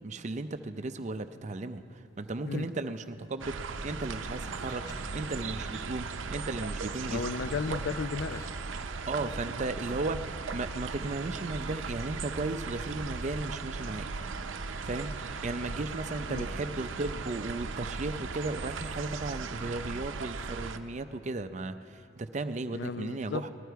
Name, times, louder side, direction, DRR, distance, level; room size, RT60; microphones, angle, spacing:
voice 1, 0.0-7.2 7.6-7.7 9.1-14.1 14.8-15.1 15.4-23.5, right 2 dB, 40° right, 9 dB, 0.5 m, -35 dB
sound 1, 2.2-10.2 10.9-11.0 11.3-11.9 12.1-12.2 12.7-13.0 13.4-16.9 17.2-17.4, equal, 15° left, 1.0 m, -52 dB
sound 2, 3.4-20.8, right 4 dB, 85° right, 0.6 m, -37 dB
voice 2, 7.1-8.4 16.3-16.5 22.7-23.4, left 5 dB, 65° left, 13 dB, 0.4 m, -34 dB
19.5 x 14.0 x 4.6 m, 3.0 s
head